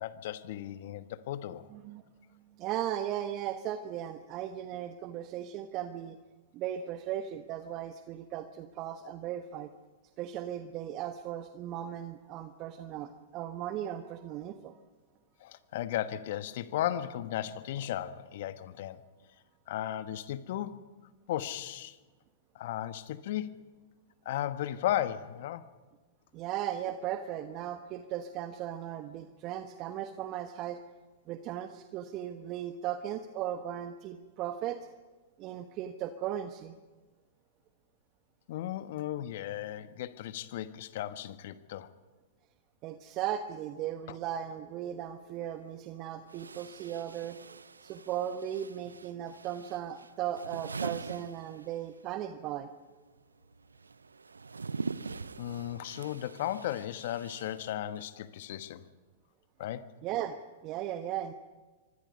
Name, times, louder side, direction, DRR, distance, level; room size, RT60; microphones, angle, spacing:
voice 1, 0.0-1.7 15.4-19.0 19.7-20.9 21.3-22.0 22.5-23.6 24.2-25.7 38.5-41.9 55.4-58.8 59.6-59.8, left 12 dB, 60° left, 12 dB, 1.3 m, -35 dB
voice 2, 1.7-2.0 2.5-6.2 6.5-9.7 10.2-14.8 26.3-30.8 31.3-34.8 35.4-36.8 42.8-47.4 47.8-52.7 60.0-60.4 60.6-61.3, right 11 dB, 40° right, 8 dB, 1.2 m, -37 dB
sound 1, 45.4-45.5 46.3-52.1 52.3-58.2, right 4 dB, 85° right, 0.7 m, -43 dB
26.0 x 24.0 x 5.4 m, 1.3 s
figure-of-eight pair, 105°, 0 cm